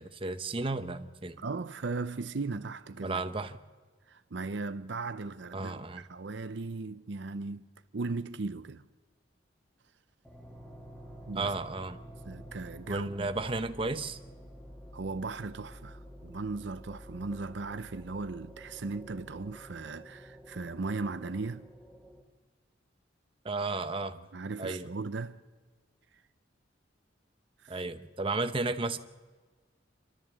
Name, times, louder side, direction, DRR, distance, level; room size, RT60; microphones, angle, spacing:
voice 1, 0.0-1.4 3.0-3.6 5.5-6.0 11.4-12.0 12.9-14.2 23.4-24.2 24.6-24.9 27.7-29.0, right 3 dB, 30° right, 0.8 m, -33 dB
voice 2, 1.4-3.2 4.1-7.7 7.9-8.8 11.3-11.5 12.2-13.3 14.9-21.6 24.3-25.4 27.6-27.8, right 3 dB, 65° right, 0.6 m, -37 dB
sound 1, 10.2-22.2, equal, 5° left, 1.6 m, -49 dB
27.5 x 13.0 x 7.3 m
head